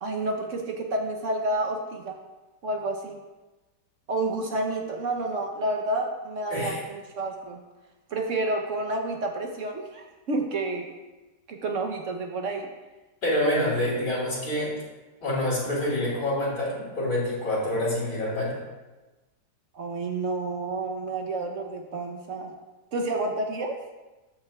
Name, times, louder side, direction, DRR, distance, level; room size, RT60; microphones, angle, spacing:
voice 1, 0.0-2.2 2.6-3.2 4.1-7.6 8.1-10.9 11.5-12.7 19.7-22.5 22.9-23.8, right 2 dB, 55° right, 3 dB, 1.0 m, -29 dB
voice 2, 13.2-14.8 15.2-18.6, left 1 dB, 90° left, -8 dB, 4.0 m, -27 dB
13.0 x 6.7 x 2.3 m, 1.1 s
omnidirectional pair, 1.8 m